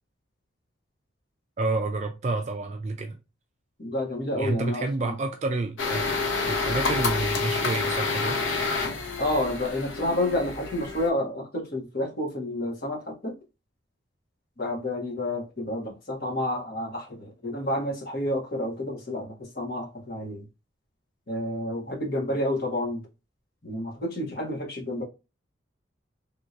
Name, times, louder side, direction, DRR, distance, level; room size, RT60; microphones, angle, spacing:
voice 1, 1.6-3.2 4.3-6.1 6.4-8.4, right 3 dB, 35° right, 0.3 m, -29 dB
voice 2, 3.8-5.1 9.2-13.4 14.6-20.5 21.3-23.0 23.6-25.0, left 1 dB, 50° left, 1.3 m, -30 dB
sound 1, 5.8-11.1, left 4 dB, 75° left, 0.8 m, -28 dB
3.6 x 2.9 x 2.4 m
head